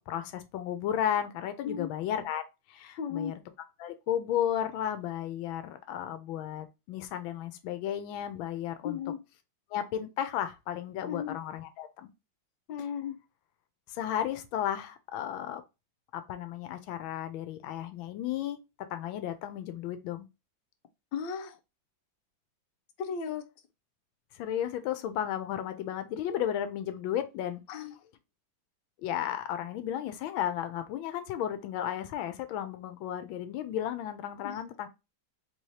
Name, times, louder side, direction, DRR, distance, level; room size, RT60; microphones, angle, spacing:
voice 1, 0.1-2.4 2.7-3.3 3.8-9.0 9.7-12.1 13.9-15.6 16.1-18.6 18.9-20.3 24.3-27.6 29.0-34.9, left 10 dB, 90° left, 1.4 m, -34 dB
voice 2, 3.0-3.3 8.8-9.2 11.1-11.4 12.7-13.2 21.1-21.6 23.0-23.5 27.7-28.0 34.4-34.6, left 7 dB, 70° left, 1.3 m, -35 dB
4.0 x 2.8 x 3.1 m
omnidirectional pair, 2.1 m